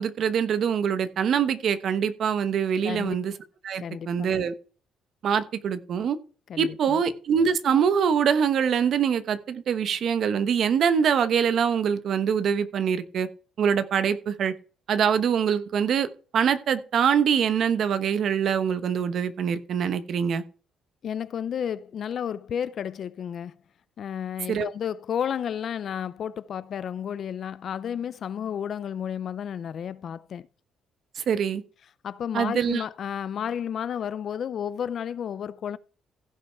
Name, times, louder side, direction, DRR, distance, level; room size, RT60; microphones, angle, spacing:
voice 1, 0.0-3.3 3.6-4.5 5.2-6.2 6.6-13.3 13.6-14.5 14.9-16.1 16.3-20.4 24.5-24.7 31.2-31.6 32.3-32.8, right 7 dB, 55° right, 1.0 m, -24 dB
voice 2, 2.8-3.2 3.8-4.2 6.5-7.0 21.0-23.6 24.0-30.5 32.0-35.8, left 8 dB, 50° left, 0.5 m, -32 dB
15.5 x 5.5 x 4.6 m
cardioid pair, 130°, 0 cm